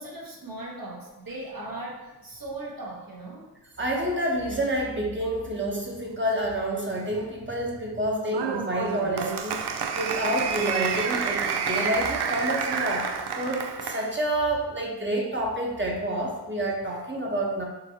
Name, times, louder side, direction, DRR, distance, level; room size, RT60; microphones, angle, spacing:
voice 1, 0.0-3.5, right 2 dB, 55° right, -3 dB, 1.1 m, -38 dB
voice 2, 3.8-17.6, right 1 dB, 30° right, -2 dB, 1.0 m, -28 dB
Applause, 8.3-14.1, right 6 dB, 75° right, 0.5 m, -29 dB
6.8 x 2.6 x 2.8 m, 1.1 s
wide cardioid pair, 80°, 41 cm